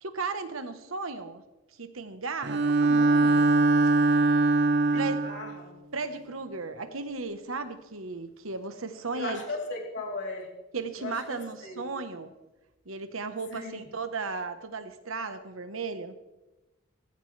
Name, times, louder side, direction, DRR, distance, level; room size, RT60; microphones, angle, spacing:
voice 1, 0.0-1.4 1.8-3.5 4.9-5.3 5.9-9.4 10.7-12.3 12.8-16.1, right 4 dB, 85° right, 9 dB, 1.2 m, -35 dB
Bowed string instrument, 2.4-5.6, right 3 dB, 55° right, 0.9 m, -22 dB
voice 2, 4.9-5.7 9.2-10.5 11.0-11.8 13.5-13.9, left 2 dB, 60° left, -1 dB, 3.5 m, -37 dB
19.0 x 15.0 x 3.4 m, 1.1 s
head